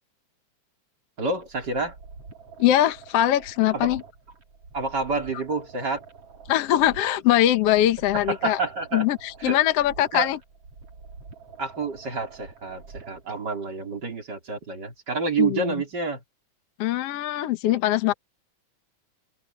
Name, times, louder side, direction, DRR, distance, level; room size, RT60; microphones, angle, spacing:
voice 1, 1.2-2.0 3.7-4.0 4.7-6.0 8.1-9.1 9.4-9.6 10.1-10.3 11.6-16.2, right 4 dB, 30° right, 4.1 m, -28 dB
sound 1, 1.3-13.3, right 4 dB, 50° right, 4.6 m, -47 dB
voice 2, 2.6-4.0 6.5-8.6 8.9-10.4 15.4-15.6 16.8-18.1, left 12 dB, 60° left, 1.8 m, -22 dB
open air
omnidirectional pair, 3.6 m